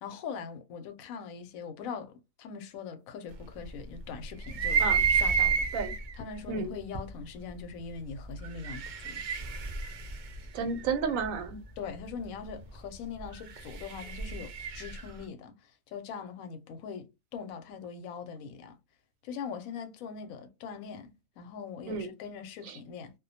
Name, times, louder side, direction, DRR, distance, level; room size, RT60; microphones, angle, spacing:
voice 1, 0.0-9.2 11.8-18.8 19.2-23.1, left 6 dB, 90° left, 1.0 m, -42 dB
sound 1, 4.5-6.1 7.0-7.1 8.4-11.3 13.3-15.1, right 6 dB, 75° right, 0.4 m, -29 dB
voice 2, 10.5-11.6 21.9-22.1 22.7-22.8, right 5 dB, 90° right, 1.0 m, -31 dB
2.3 x 2.1 x 2.6 m
omnidirectional pair, 1.4 m